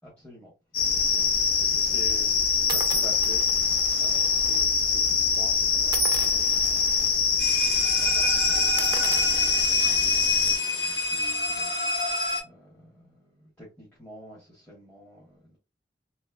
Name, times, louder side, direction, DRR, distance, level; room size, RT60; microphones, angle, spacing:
voice 1, 0.0-0.5 0.8-2.3 2.6-3.5 4.0-7.0 7.8-15.6, equal, 10° left, 1.2 m, -47 dB
sound 1, 0.7-10.6, left 6 dB, 55° left, 0.9 m, -24 dB
sound 2, 1.0-1.3 2.1-2.2 2.7-4.6 4.9-5.1 5.9-7.1 7.5-7.7 8.0-8.1 8.6-10.2, right 5 dB, 20° right, 0.5 m, -35 dB
sound 3, 7.4-12.4, left 1 dB, 70° left, 1.3 m, -28 dB
3.1 x 3.0 x 2.2 m
head